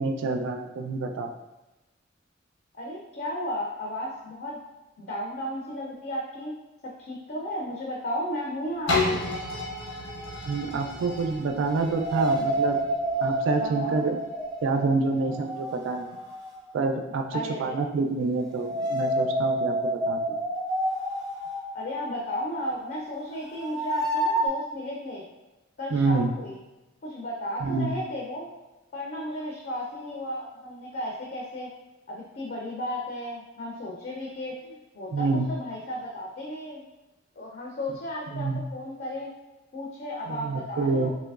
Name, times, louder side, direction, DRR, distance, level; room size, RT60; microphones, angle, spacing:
voice 1, 0.0-1.3 10.5-12.8 13.2-14.2 14.6-16.1 16.7-19.7 20.1-20.4 25.9-26.3 27.6-27.9 35.1-35.5 38.3-38.6 40.3-41.1, right 3 dB, 70° right, 5 dB, 0.3 m, -27 dB
voice 2, 2.7-4.6 5.0-6.5 7.0-9.4 13.6-14.0 17.3-17.7 21.7-25.2 25.8-26.6 27.0-28.5 28.9-31.7 32.1-36.9 37.4-39.3 39.7-41.1, left 1 dB, 50° left, -3 dB, 0.5 m, -34 dB
sound 1, 8.9-14.6 15.2-15.3, left 3 dB, 80° left, 0.8 m, -33 dB
sound 2, 10.1-10.8 11.9-16.5 18.5-24.5, right 1 dB, 15° right, 0.6 m, -29 dB
3.2 x 2.9 x 2.3 m, 1.0 s
head